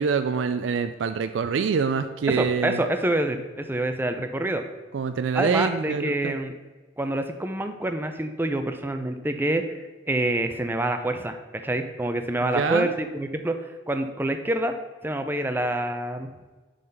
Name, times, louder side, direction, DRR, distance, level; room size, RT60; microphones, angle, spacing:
voice 1, 0.0-2.8 4.9-6.4 12.5-12.9, right 5 dB, 85° right, 9 dB, 0.4 m, -25 dB
voice 2, 2.3-4.6 5.3-6.5 7.0-9.6 10.1-11.4 11.6-13.6 13.9-14.7 15.0-16.3, right 1 dB, 10° right, 7 dB, 0.5 m, -26 dB
7.5 x 3.9 x 5.5 m, 1.3 s
head